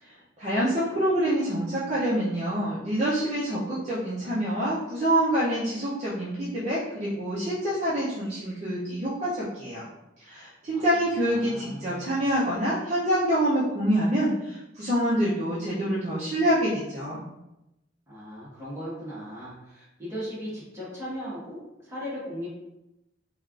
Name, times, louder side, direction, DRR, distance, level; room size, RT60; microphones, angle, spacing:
voice 1, 0.0-9.8 10.2-17.2, right 1 dB, 35° right, -8 dB, 0.5 m, -26 dB
voice 2, 10.7-12.2 18.1-22.5, equal, 15° right, -8 dB, 1.1 m, -38 dB
3.3 x 2.4 x 2.4 m, 0.92 s
head